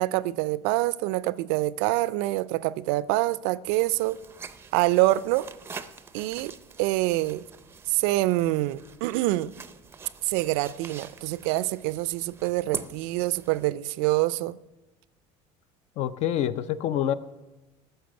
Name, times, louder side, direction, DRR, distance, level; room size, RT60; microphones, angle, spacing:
voice 1, 0.0-4.2 4.7-5.4 6.1-6.5 6.8-7.4 7.9-9.5 10.2-14.6, right 18 dB, 75° right, 0.4 m, -25 dB
sound 1, 3.6-13.7, right 5 dB, 15° right, 0.6 m, -44 dB
voice 2, 16.0-17.1, left 11 dB, 50° left, 0.6 m, -26 dB
12.5 x 6.5 x 7.7 m
supercardioid pair, 130°, 15 cm